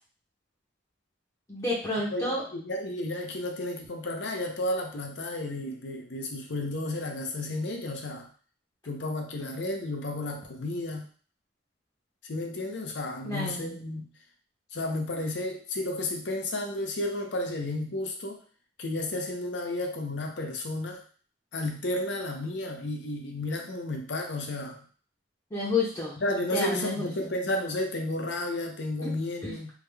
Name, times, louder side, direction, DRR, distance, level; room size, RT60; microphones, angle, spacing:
voice 1, 1.5-2.4 13.2-13.7 25.5-26.2 26.5-27.3 29.0-29.1 29.4-29.5, left 2 dB, 20° left, -6 dB, 0.7 m, -30 dB
voice 2, 2.1-8.3 8.8-11.1 12.3-14.1 14.7-18.4 18.8-21.0 21.5-24.8 26.2-29.7, left 1 dB, 70° left, 3 dB, 0.7 m, -32 dB
3.5 x 2.2 x 3.3 m, 0.43 s
head